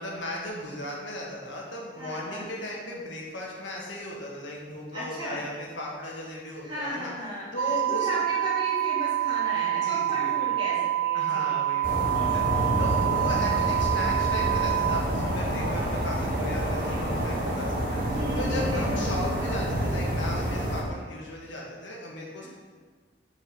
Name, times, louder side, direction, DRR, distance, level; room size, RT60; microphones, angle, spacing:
voice 1, 0.0-7.1 7.5-8.1 9.8-10.5 11.1-12.1 12.3-22.5, left 1 dB, 85° left, -2 dB, 1.6 m, -37 dB
voice 2, 2.0-2.5 4.9-5.4 6.6-11.5 12.1-13.0 18.1-19.0 22.4-22.5, left 1 dB, 25° right, -8 dB, 2.5 m, -36 dB
sound 1, 7.6-15.0, right 14 dB, 85° right, 0.5 m, -27 dB
sound 2, 11.8-20.8, right 1 dB, 50° right, 1.2 m, -28 dB
6.5 x 4.7 x 6.0 m, 1.5 s
head